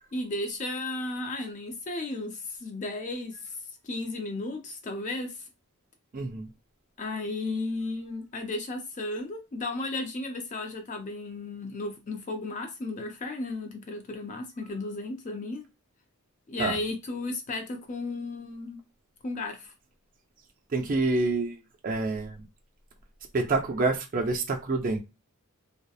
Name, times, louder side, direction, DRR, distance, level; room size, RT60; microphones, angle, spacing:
voice 1, 0.1-3.6 3.8-5.5 7.0-15.7 16.5-18.8 19.2-19.7, left 2 dB, 35° left, 0.4 m, -34 dB
voice 2, 6.1-6.5 16.6-16.8 20.7-21.6 21.8-22.4 23.3-25.0, right 3 dB, 40° right, 0.4 m, -27 dB
2.8 x 2.1 x 2.3 m
head